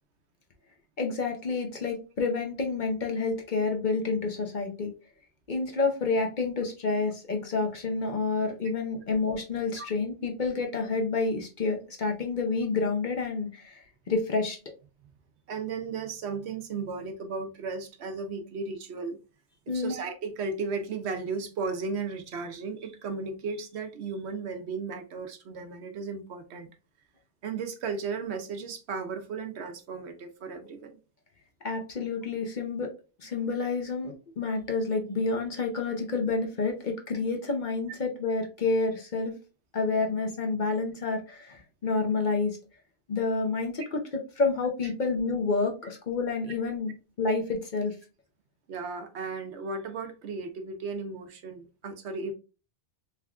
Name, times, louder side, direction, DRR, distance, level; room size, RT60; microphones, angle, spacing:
voice 1, 1.0-4.9 5.5-14.6 19.7-19.9 31.6-32.9 33.2-39.3 39.7-42.6 43.1-44.0 44.4-46.9 47.2-47.9, left 4 dB, 50° left, 0.7 m, -29 dB
voice 2, 15.5-19.2 19.7-26.7 27.4-31.0 48.7-52.3, right 4 dB, 70° right, 0.9 m, -35 dB
3.5 x 3.4 x 2.3 m
omnidirectional pair, 1.2 m